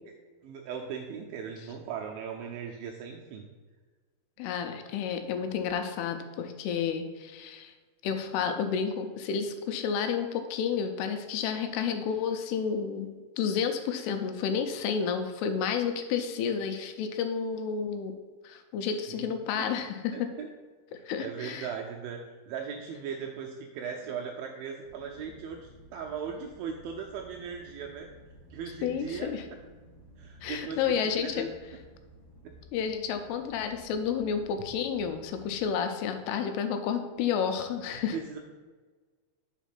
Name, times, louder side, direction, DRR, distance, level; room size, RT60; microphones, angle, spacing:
voice 1, 0.4-3.4 19.1-19.3 19.6-19.7 20.1-20.5 20.9-22.2 22.5-28.1 28.5-29.3 30.2-31.5 32.4-32.5 38.1-38.4, right 7 dB, 85° right, 1 dB, 2.1 m, -38 dB
voice 2, 4.4-7.7 8.0-13.1 13.4-18.1 18.4-20.3 20.9-21.7 28.8-29.5 30.4-31.5 32.7-38.2, left 7 dB, 85° left, 7 dB, 2.6 m, -31 dB
sound 1, 24.8-35.6, right 1 dB, 55° left, 1.7 m, -54 dB
5.1 x 4.5 x 5.7 m, 1.4 s
omnidirectional pair, 4.6 m